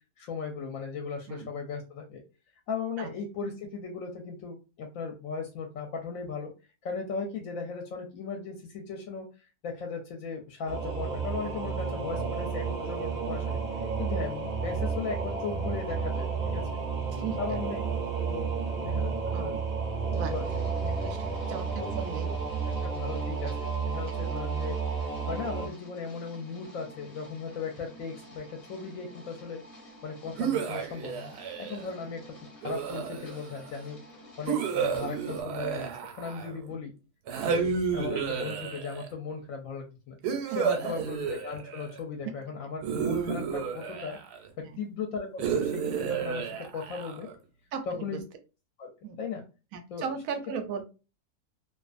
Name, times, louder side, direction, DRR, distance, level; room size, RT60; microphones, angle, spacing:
voice 1, 0.2-2.2 2.7-6.5 6.8-9.3 9.6-13.6 14.0-16.6 17.4-17.8 18.2-18.5 18.8-19.1 19.4-19.6 20.3-20.4 20.8-21.0 21.8-21.9 22.2-22.4 22.8-24.8 25.3-29.6 30.0-34.0 34.4-35.9 36.2-36.9 37.4-40.2 40.5-44.2 44.6-47.3 47.9-48.2 48.8-48.9 49.2-49.4 49.9-50.0, left 5 dB, 70° left, 2 dB, 0.9 m, -37 dB
Singing / Musical instrument, 10.7-25.7, right 5 dB, 45° right, 0.5 m, -31 dB
sound 1, 20.1-35.4, equal, 35° left, 0.6 m, -51 dB
voice 2, 21.0-22.3 36.5-36.8 40.5-40.9 44.6-44.9 47.7-48.2 49.0-49.2 49.7-50.8, right 6 dB, 70° right, 7 dB, 0.9 m, -37 dB
sound 2, 30.4-31.9 32.6-33.6 34.5-36.7 37.3-39.1 40.2-42.0 42.8-44.5 45.4-47.3, right 6 dB, 90° right, 1.2 m, -31 dB
2.4 x 2.4 x 2.4 m, 0.30 s
omnidirectional pair, 1.7 m